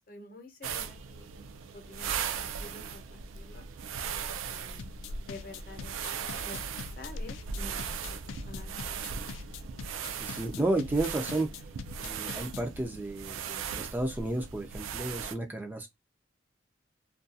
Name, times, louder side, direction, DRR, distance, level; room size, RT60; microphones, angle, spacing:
voice 1, 0.1-1.3 1.7-3.6 4.5-4.8 5.3-5.9 6.2-6.6 7.0-9.2, left 2 dB, 50° left, 0.7 m, -49 dB
sound 1, 0.6-15.3, right 7 dB, 90° right, 0.3 m, -38 dB
sound 2, 2.9-13.0, equal, 70° right, 0.9 m, -49 dB
sound 3, 4.8-12.8, left 6 dB, 85° left, 0.3 m, -44 dB
voice 2, 10.1-11.5 12.0-15.9, right 2 dB, 10° right, 0.3 m, -32 dB
2.3 x 2.2 x 2.6 m
head